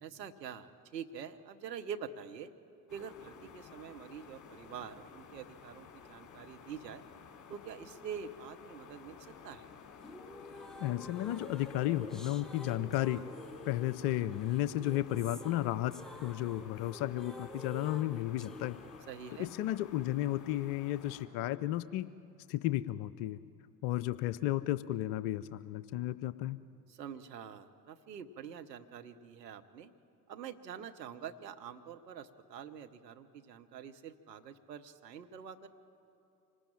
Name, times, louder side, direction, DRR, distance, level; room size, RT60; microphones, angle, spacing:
voice 1, 0.0-2.5 2.9-7.0 7.5-9.7 19.1-19.5 26.9-29.9 30.3-35.7, right 7 dB, 80° right, 7 dB, 1.1 m, -46 dB
sound 1, 2.9-21.3, left 6 dB, 35° left, 3.7 m, -53 dB
sound 2, 10.0-19.0, left 1 dB, ahead, 1.2 m, -50 dB
voice 2, 10.8-13.2 13.7-15.9 16.2-18.8 19.4-22.1 22.5-23.4 23.8-26.6, left 14 dB, 55° left, 16 dB, 0.7 m, -33 dB
26.0 x 19.0 x 8.8 m, 2.9 s
figure-of-eight pair, 60°, 49 cm